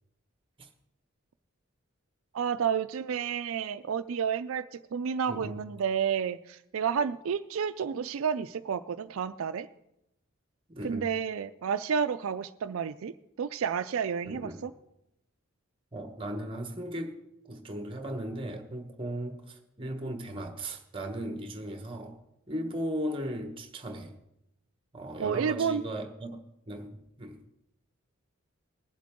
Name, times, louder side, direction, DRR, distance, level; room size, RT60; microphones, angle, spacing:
voice 1, 2.3-9.7 10.8-14.7 25.2-25.8, right 7 dB, 80° right, 0.4 m, -30 dB
voice 2, 5.3-5.6 10.7-11.1 14.2-14.6 15.9-17.2 17.5-22.2 22.5-24.2 24.9-26.4 26.7-27.4, right 1 dB, 25° right, 1.1 m, -37 dB
20.0 x 7.6 x 3.6 m
head